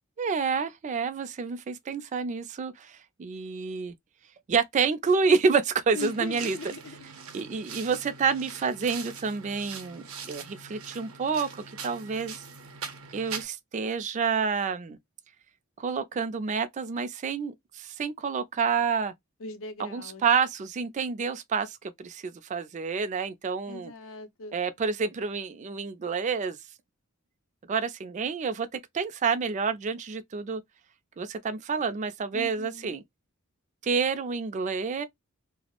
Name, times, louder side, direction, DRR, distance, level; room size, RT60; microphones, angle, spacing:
voice 1, 0.2-3.9 4.5-6.6 7.3-12.4 13.1-15.0 15.8-19.1 19.8-23.9 24.5-26.6 27.7-30.6 31.2-33.0 33.8-35.0, right 5 dB, 35° right, 0.3 m, -28 dB
voice 2, 5.9-7.0 19.4-20.2 23.7-24.5 32.3-33.0, left 3 dB, 65° left, 0.6 m, -40 dB
sound 1, 6.0-13.5, right 6 dB, 80° right, 0.6 m, -42 dB
2.3 x 2.0 x 2.8 m
head